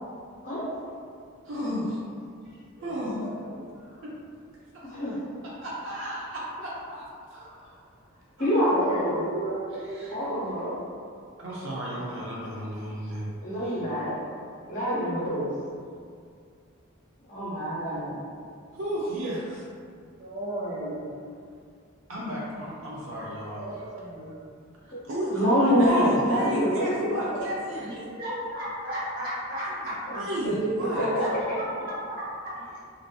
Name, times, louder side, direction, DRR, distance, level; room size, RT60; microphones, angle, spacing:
voice 1, 1.4-2.0 2.8-3.3 4.0-4.1 4.7-5.0 5.4-7.0 7.3-7.8 8.4-8.6 9.8-10.2 11.4-13.3 13.6-13.8 18.7-19.6 22.1-23.9 24.8-27.9 29.7-31.1, right 1 dB, 60° right, -6 dB, 0.5 m, -34 dB
voice 2, 3.2-3.7 8.7-10.1 20.2-21.1 23.5-24.4 27.2-27.5 27.9-30.2 30.9-32.8, right 1 dB, 45° right, -10 dB, 0.9 m, -34 dB
voice 3, 8.4-9.2 10.1-10.7 13.4-14.1 14.7-15.5 17.3-18.2 24.9-25.0 25.3-27.2 27.8-27.9 30.1-31.2, equal, 35° left, -9 dB, 0.7 m, -26 dB
2.5 x 2.5 x 2.3 m, 2.2 s
head